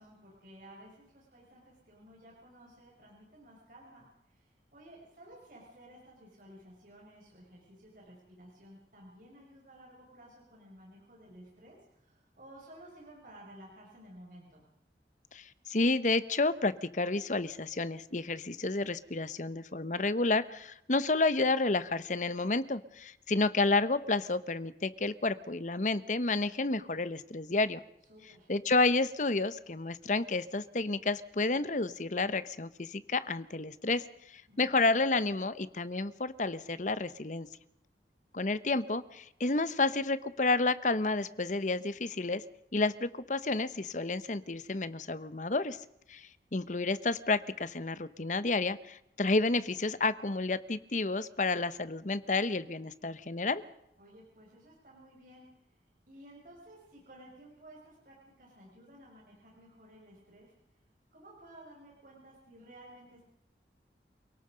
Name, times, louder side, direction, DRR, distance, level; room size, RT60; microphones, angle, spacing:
voice 1, 0.0-14.6 28.0-28.5 34.5-34.9 54.0-60.8 61.1-63.3, right 1 dB, 50° right, -3 dB, 6.0 m, -55 dB
voice 2, 15.3-27.8 28.5-37.5 38.3-42.4 42.7-45.8 46.1-53.6, left 3 dB, 45° left, 15 dB, 1.0 m, -30 dB
28.5 x 18.0 x 5.2 m, 0.80 s
head